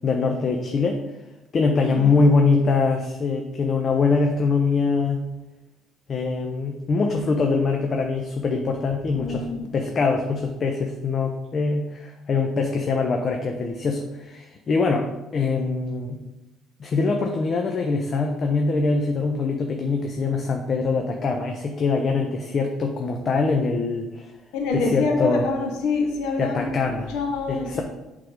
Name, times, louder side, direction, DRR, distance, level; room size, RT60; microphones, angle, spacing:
voice 1, 0.0-1.0 1.5-5.2 6.1-9.5 9.7-16.2 16.8-24.3 24.7-25.5 26.4-27.1 27.5-27.8, left 4 dB, 45° left, 3 dB, 0.8 m, -23 dB
voice 2, 1.9-2.3 9.1-9.7 24.5-27.8, left 3 dB, 85° left, 2 dB, 0.9 m, -26 dB
7.8 x 3.9 x 5.0 m, 1.0 s
supercardioid pair, 85°, 0 cm